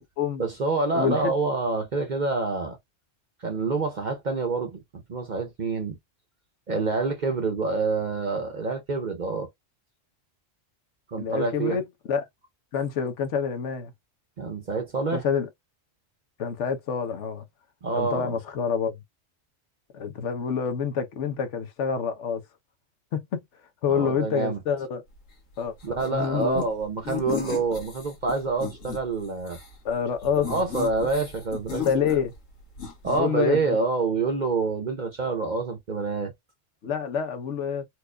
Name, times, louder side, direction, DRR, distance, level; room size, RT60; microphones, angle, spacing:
voice 1, 0.4-2.8 3.4-6.0 6.7-9.5 11.1-11.8 14.4-15.2 17.8-18.4 23.9-24.6 25.8-29.6 30.4-31.9 33.0-36.3, right 3 dB, 45° right, 0.7 m, -27 dB
voice 2, 0.9-1.3 11.2-11.8 12.1-12.2 12.7-13.9 15.1-15.5 16.4-17.4 17.9-18.9 19.9-22.4 23.1-23.4 23.8-25.0 25.6-26.6 29.8-30.5 31.7-32.3 33.1-33.8 36.8-37.9, left 7 dB, 70° left, 1.1 m, -27 dB
sound 1, 26.0-26.7 27.0-29.0 29.4-29.7 30.2-32.5 32.7-33.2, left 7 dB, 85° left, 1.8 m, -35 dB
4.4 x 2.4 x 2.2 m
omnidirectional pair, 1.3 m